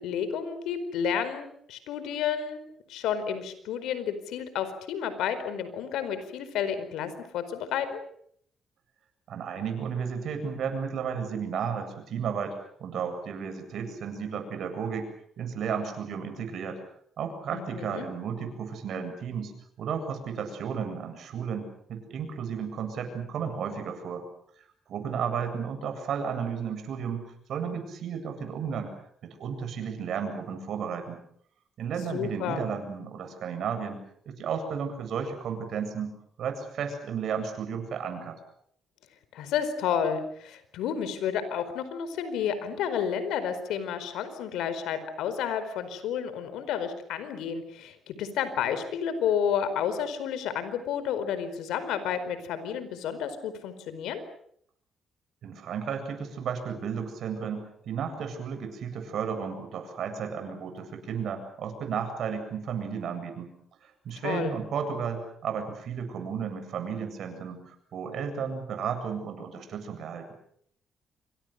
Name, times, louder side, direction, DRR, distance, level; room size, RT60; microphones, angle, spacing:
voice 1, 0.0-2.6 2.9-8.0 17.5-18.1 32.1-32.6 39.3-54.2 64.2-64.6, left 8 dB, 90° left, 12 dB, 4.6 m, -31 dB
voice 2, 9.3-12.5 12.8-16.8 17.2-19.5 19.8-24.2 24.9-27.2 27.5-28.9 29.2-31.2 31.8-36.1 36.4-38.4 55.4-63.5 63.8-70.3, right 6 dB, 70° right, 7 dB, 8.0 m, -33 dB
27.5 x 25.5 x 6.7 m, 0.67 s
cardioid pair, 90°, 0 cm